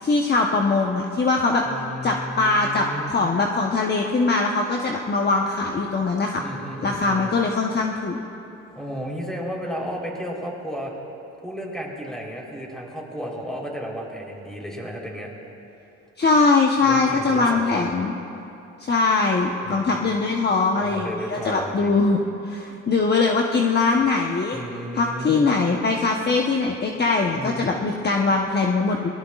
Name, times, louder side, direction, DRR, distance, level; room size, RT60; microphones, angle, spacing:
voice 1, 0.0-1.6 2.0-6.4 6.8-8.2 16.2-18.1 18.8-22.2 22.4-24.6 24.9-29.1, left 3 dB, 35° left, 0 dB, 1.0 m, -21 dB
voice 2, 1.7-3.1 6.4-7.4 8.8-10.9 11.4-15.3 16.8-18.0 19.6-20.2 20.8-22.0 24.5-25.5 27.3-27.8, equal, ahead, -2 dB, 3.8 m, -33 dB
24.5 x 19.0 x 2.4 m, 2.8 s
cardioid pair, 90°, 30 cm